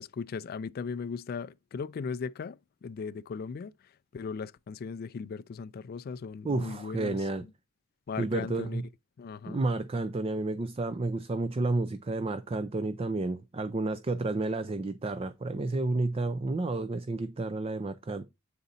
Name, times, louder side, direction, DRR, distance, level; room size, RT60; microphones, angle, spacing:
voice 1, 0.0-3.7 4.1-7.3 8.1-8.8 9.2-9.7, left 5 dB, 45° left, 0.3 m, -38 dB
voice 2, 6.4-7.4 8.2-8.8 9.5-18.3, right 2 dB, 30° right, 0.4 m, -31 dB
8.2 x 4.0 x 4.0 m
head